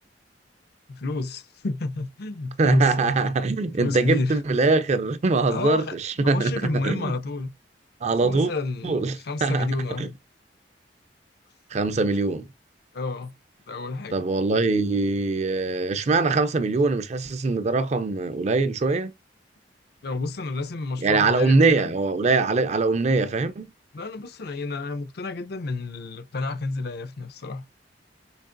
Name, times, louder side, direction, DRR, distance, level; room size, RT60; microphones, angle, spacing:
voice 1, 0.9-3.1 3.8-4.4 5.5-7.5 8.1-10.2 12.9-13.3 13.7-14.2 20.0-21.9 23.9-27.6, left 3 dB, 60° left, 0.5 m, -30 dB
voice 2, 2.6-7.1 8.0-8.5 8.8-9.7 10.0-10.1 11.7-12.5 14.1-19.1 21.0-23.7, right 3 dB, 40° right, 0.4 m, -22 dB
4.6 x 2.8 x 2.5 m
head